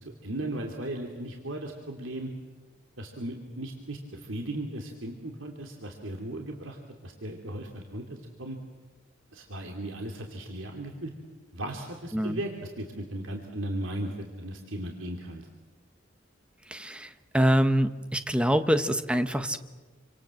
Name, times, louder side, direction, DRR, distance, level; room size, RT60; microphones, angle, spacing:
voice 1, 0.0-2.3 3.0-8.6 9.3-11.1 11.5-15.5, right 1 dB, 90° right, 2 dB, 2.8 m, -37 dB
voice 2, 16.7-19.6, equal, 5° right, 9 dB, 1.2 m, -25 dB
28.0 x 25.5 x 7.7 m, 1.3 s
head